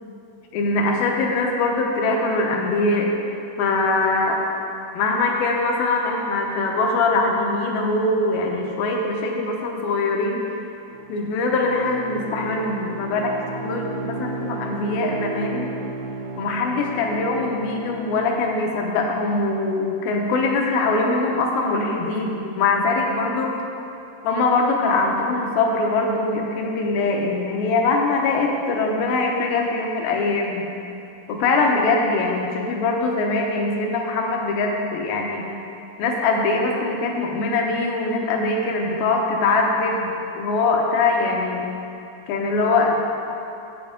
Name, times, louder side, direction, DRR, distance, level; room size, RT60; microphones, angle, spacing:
voice 1, 0.5-3.1 3.6-4.4 4.9-10.4 11.1-13.3 13.6-15.7 16.4-23.5 24.2-30.7 31.3-35.5 36.0-41.7 42.3-42.9, left 3 dB, 75° left, 0 dB, 2.6 m, -22 dB
Bowed string instrument, 10.9-18.6, right 3 dB, 85° right, 2.7 m, -34 dB
9.2 x 8.3 x 5.1 m, 2.7 s
omnidirectional pair, 4.5 m